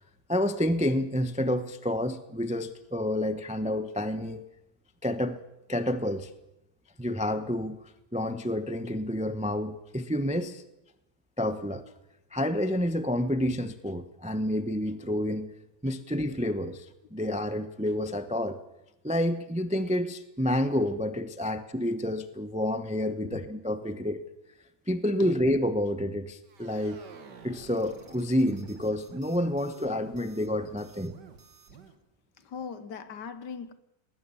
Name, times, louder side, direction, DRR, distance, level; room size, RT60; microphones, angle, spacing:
voice 1, 0.3-4.4 5.0-5.4 5.7-6.3 7.0-7.8 8.1-10.6 11.4-11.8 12.3-15.5 15.8-16.9 17.1-18.6 19.0-24.2 24.9-27.0 27.4-31.1, left 1 dB, 10° right, 0.4 m, -29 dB
sound 1, 26.4-32.0, right 5 dB, 55° right, 2.3 m, -51 dB
voice 2, 32.4-33.7, left 6 dB, 60° left, 1.6 m, -40 dB
19.5 x 19.0 x 7.1 m
omnidirectional pair, 2.2 m